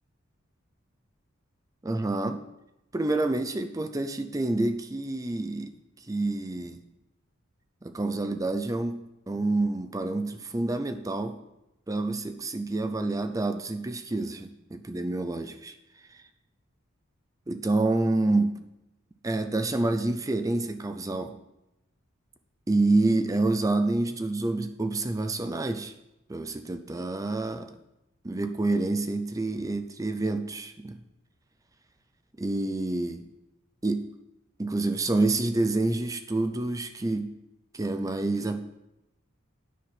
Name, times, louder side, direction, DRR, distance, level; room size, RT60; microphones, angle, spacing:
voice 1, 1.8-2.4 2.9-5.7 6.0-6.8 7.8-11.4 11.9-15.8 16.1-16.2 17.5-18.5 19.2-21.4 22.7-25.9 26.3-27.7 28.2-31.0 32.4-33.2 33.8-34.0 34.6-37.3 37.7-38.6, right 2 dB, 15° right, 8 dB, 0.4 m, -28 dB
9.3 x 5.6 x 5.9 m, 0.90 s
head